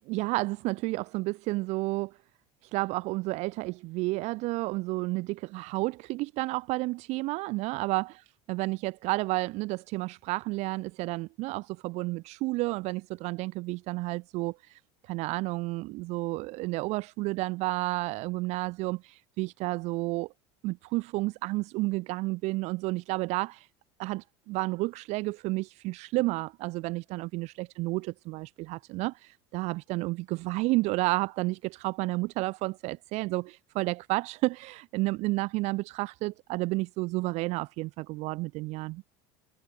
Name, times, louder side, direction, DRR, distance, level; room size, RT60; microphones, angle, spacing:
voice 1, 0.0-2.2 2.6-20.3 20.6-23.7 24.0-39.0, right 22 dB, 60° right, 0.6 m, -31 dB
supercardioid pair, 100°, 13 cm